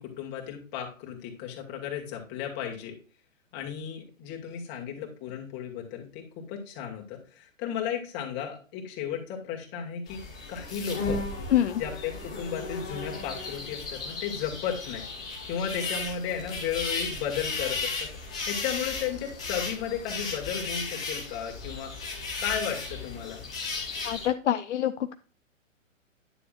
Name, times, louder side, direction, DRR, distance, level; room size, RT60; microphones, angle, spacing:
voice 1, 0.0-2.9 3.5-10.2 10.5-11.2 11.8-15.0 15.5-18.1 18.5-21.9 22.4-23.4, left 8 dB, 25° left, 1 dB, 2.3 m, -34 dB
sound 1, 10.1-24.3, left 3 dB, 5° left, 0.3 m, -35 dB
voice 2, 11.5-11.8 24.0-25.1, left 11 dB, 60° left, 9 dB, 0.7 m, -26 dB
10.0 x 6.8 x 2.5 m, 0.39 s
hypercardioid pair, 135°, 40 cm